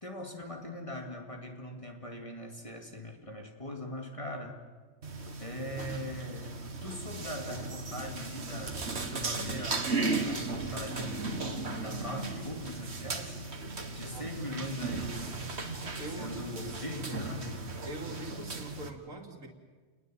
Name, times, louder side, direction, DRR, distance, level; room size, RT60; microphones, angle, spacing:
voice 1, 0.0-4.6 5.4-9.9 10.2-13.5 13.8-15.2 16.2-17.6, left 1 dB, 25° left, 2 dB, 2.5 m, -41 dB
sound 1, 5.0-18.9, right 3 dB, 50° right, 2.1 m, -36 dB
voice 2, 14.0-14.7 16.0-17.2 17.8-19.5, right 2 dB, 70° right, 2 dB, 3.1 m, -43 dB
28.5 x 20.5 x 7.8 m, 1.4 s
omnidirectional pair, 1.4 m